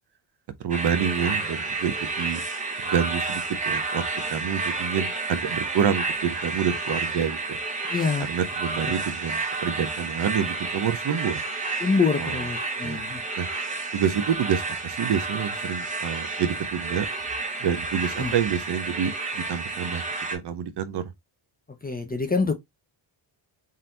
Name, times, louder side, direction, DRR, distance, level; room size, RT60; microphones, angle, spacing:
voice 1, 0.6-2.4 2.8-4.0 4.3-7.6 8.2-11.4 12.2-12.4 12.8-13.0 13.4-13.5 13.9-17.1 17.6-20.0 20.3-21.1, right 8 dB, 55° right, 0.7 m, -27 dB
sound 1, 0.7-20.4, right 3 dB, 15° right, 1.1 m, -30 dB
voice 2, 7.9-8.3 11.8-13.2 18.2-18.3 21.8-22.5, left 4 dB, 20° left, 0.5 m, -25 dB
3.8 x 2.6 x 4.3 m
wide cardioid pair, 165°, 50 cm